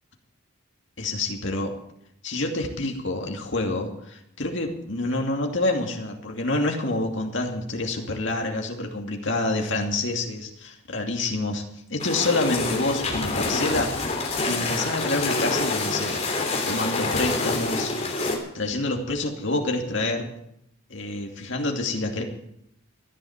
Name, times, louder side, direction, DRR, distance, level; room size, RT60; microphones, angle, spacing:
voice 1, 1.0-1.7 2.2-11.6 11.9-13.9 14.4-17.9 18.5-20.3 20.9-22.2, left 2 dB, 55° left, 2 dB, 2.6 m, -27 dB
sound 1, 12.0-18.4, left 3 dB, 30° left, 3.1 m, -27 dB
15.0 x 11.0 x 7.3 m, 0.75 s
head